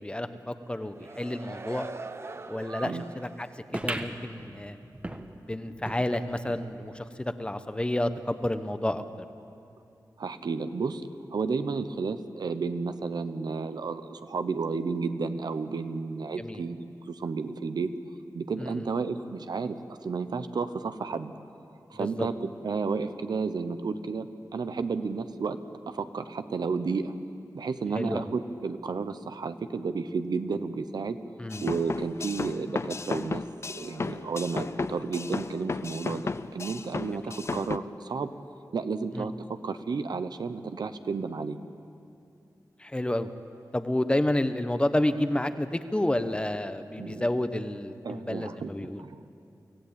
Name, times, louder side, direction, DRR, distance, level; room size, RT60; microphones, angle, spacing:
voice 1, 0.0-1.9 2.5-3.5 3.7-4.8 5.3-9.0 16.4-16.6 18.6-18.9 21.9-22.3 27.9-28.3 31.4-31.6 39.1-39.3 42.8-43.3 43.7-49.0, left 1 dB, 15° left, 10 dB, 0.9 m, -30 dB
sound 1, 0.7-3.5 3.9-4.0, right 3 dB, 40° right, 0.8 m, -42 dB
sound 2, 3.7-6.7 7.1-7.2 7.4-7.5 8.3-8.4, right 1 dB, 20° right, 1.3 m, -38 dB
voice 2, 10.2-11.0 11.3-17.9 18.3-19.8 20.0-21.3 21.9-24.3 24.5-25.6 25.9-27.1 27.5-31.2 31.6-33.4 33.7-38.3 38.7-41.6 47.0-47.3 48.0-48.7 49.0-49.3, right 4 dB, 80° right, 10 dB, 0.9 m, -32 dB
sound 3, 31.5-37.8, left 4 dB, 40° left, 0.5 m, -34 dB
25.0 x 15.5 x 8.7 m, 2.6 s
wide cardioid pair, 105°, 7 cm